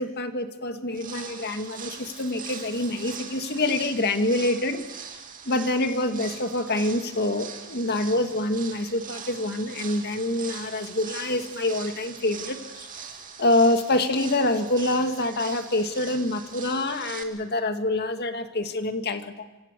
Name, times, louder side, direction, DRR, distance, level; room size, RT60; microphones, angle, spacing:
voice 1, 0.0-4.8 5.4-12.9 13.4-19.5, left 2 dB, 50° left, 7 dB, 1.9 m, -26 dB
sound 1, 0.9-17.2, right 7 dB, 40° right, 2.6 m, -41 dB
25.5 x 25.0 x 6.8 m, 1.1 s
head